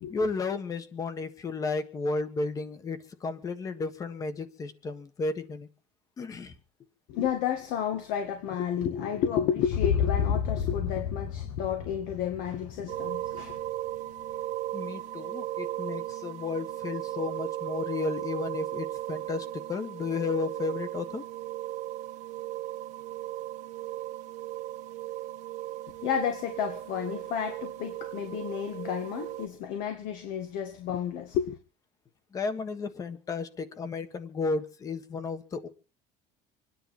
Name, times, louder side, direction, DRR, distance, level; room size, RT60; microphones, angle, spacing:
voice 1, 0.1-5.7 6.2-6.5 14.7-21.2 32.3-35.7, left 4 dB, 25° left, 1.5 m, -33 dB
voice 2, 7.1-13.6 26.0-31.6, left 8 dB, 65° left, 2.0 m, -31 dB
sound 1, 9.6-13.7, left 8 dB, 90° left, 6.3 m, -31 dB
sound 2, 12.9-29.5, right 15 dB, 60° right, 1.4 m, -37 dB
26.5 x 10.5 x 4.4 m
cardioid pair, 170°, 14 cm